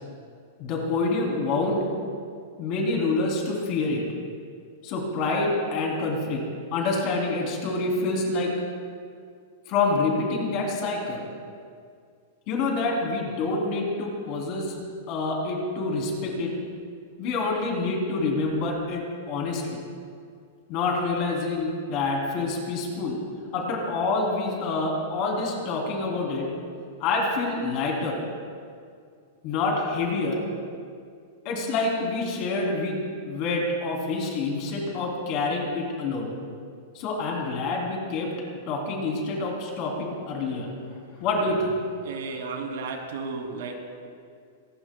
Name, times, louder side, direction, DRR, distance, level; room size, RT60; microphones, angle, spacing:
voice 1, 0.6-1.9 2.6-4.0 4.8-6.4 6.7-8.5 9.7-11.3 12.5-14.7 15.1-16.5 17.2-19.8 20.7-23.2 23.5-26.5 27.0-28.2 29.4-30.4 31.4-33.0 33.3-36.3 36.9-38.3 38.7-40.7 41.2-41.7, left 3 dB, 35° left, 0 dB, 3.4 m, -27 dB
voice 2, 42.0-43.7, right 4 dB, 80° right, 2 dB, 3.0 m, -33 dB
24.5 x 20.0 x 2.3 m, 2.2 s
supercardioid pair, 170°, 0 cm